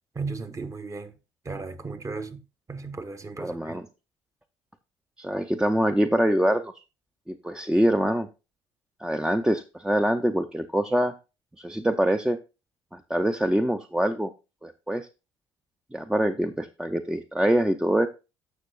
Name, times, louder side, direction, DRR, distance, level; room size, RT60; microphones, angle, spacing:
voice 1, 0.1-1.1 1.4-2.4 2.7-3.8, right 4 dB, 20° right, 1.0 m, -35 dB
voice 2, 3.4-3.8 5.2-6.7 7.3-8.3 9.0-11.1 11.6-12.4 12.9-14.3 14.6-15.1 15.9-18.1, right 1 dB, 5° right, 0.6 m, -24 dB
14.5 x 6.1 x 2.4 m
figure-of-eight pair, 55°, 14 cm